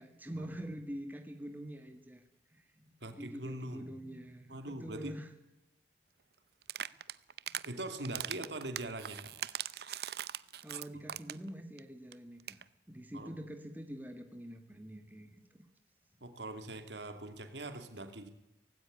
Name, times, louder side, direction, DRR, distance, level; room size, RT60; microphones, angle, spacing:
voice 1, 0.0-2.2 2.5-5.3 10.6-12.6 12.9-15.4, equal, 10° right, 5 dB, 2.0 m, -45 dB
voice 2, 3.0-3.9 4.5-5.1 7.6-9.3 13.1-13.3 16.2-18.3, right 2 dB, 80° right, 7 dB, 2.6 m, -42 dB
sound 1, 6.6-7.7 8.0-11.5 11.8-11.9 12.1-12.2 12.4-12.6, right 10 dB, 60° right, 0.7 m, -40 dB
18.0 x 16.5 x 9.9 m, 0.88 s
head